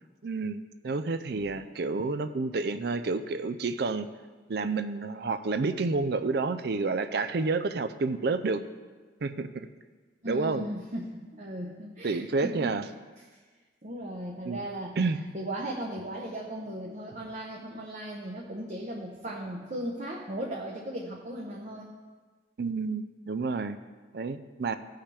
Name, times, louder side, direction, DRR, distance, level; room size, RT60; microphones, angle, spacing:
voice 1, 0.2-4.1 4.5-8.6 9.2-9.7 10.3-10.7 12.0-12.8 14.5-14.6 15.0-15.2 22.6-23.8 24.1-24.8, right 3 dB, 55° right, 10 dB, 0.4 m, -29 dB
voice 2, 10.2-12.7 13.2-13.4 13.8-15.0 15.3-21.9, right 1 dB, 40° right, -2 dB, 0.8 m, -37 dB
16.0 x 5.7 x 3.4 m, 1.4 s
head